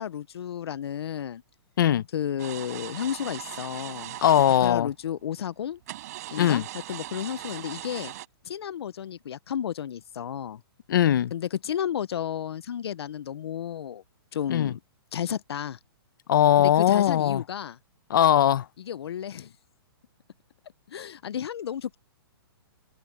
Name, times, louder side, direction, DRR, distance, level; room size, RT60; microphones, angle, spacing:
voice 1, 0.0-1.4 2.1-4.2 4.6-5.8 6.3-8.1 8.4-10.6 11.3-14.0 14.3-14.8 15.1-15.8 16.6-17.8 18.8-19.5 20.9-22.0, left 9 dB, 80° left, 0.6 m, -32 dB
sound 1, 2.4-4.8 5.9-8.3, right 15 dB, 40° right, 4.3 m, -39 dB
voice 2, 4.2-4.9 6.4-6.6 10.9-11.3 14.5-14.7 16.3-17.4 18.1-18.6, left 11 dB, 55° left, 0.9 m, -20 dB
hypercardioid pair, 170°, 13 cm